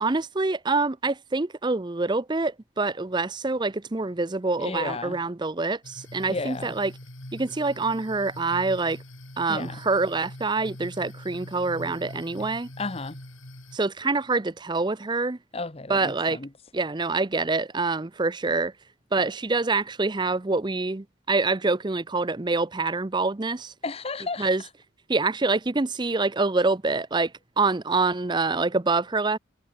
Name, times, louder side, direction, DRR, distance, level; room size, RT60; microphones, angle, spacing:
voice 1, 0.0-6.9 7.3-9.0 9.4-12.7 13.7-15.4 15.9-16.4 16.7-18.7 19.1-23.7 24.4-24.6 25.1-29.4, right 3 dB, 20° right, 0.6 m, -26 dB
voice 2, 4.6-5.2 6.3-6.7 9.5-9.7 12.4-12.5 12.8-13.2 15.5-16.5 23.8-24.5, left 3 dB, 30° left, 1.0 m, -33 dB
sound 1, 5.8-13.8, left 1 dB, 90° left, 6.4 m, -43 dB
head